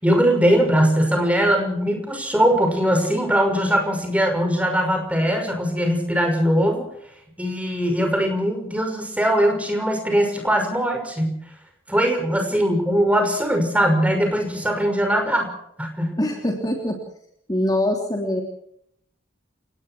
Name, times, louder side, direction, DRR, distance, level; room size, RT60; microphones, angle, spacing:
voice 1, 0.0-6.9 7.4-11.4 11.9-15.5 15.8-16.1, equal, 5° right, 4 dB, 6.0 m, -20 dB
voice 2, 16.2-17.0 17.5-18.4, left 1 dB, 20° left, 2 dB, 3.2 m, -23 dB
30.0 x 19.0 x 4.6 m, 0.71 s
head